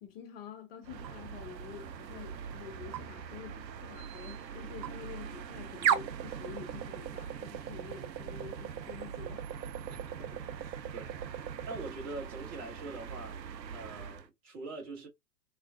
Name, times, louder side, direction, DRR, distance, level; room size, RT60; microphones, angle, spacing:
voice 1, 0.0-9.5, left 8 dB, 35° left, 0.7 m, -48 dB
sound 1, 0.8-14.3, right 8 dB, 85° right, 0.6 m, -38 dB
voice 2, 9.9-11.1 11.7-13.4 13.7-15.1, right 2 dB, 30° right, 1.7 m, -44 dB
3.6 x 2.4 x 2.3 m
hypercardioid pair, 120°, 50 cm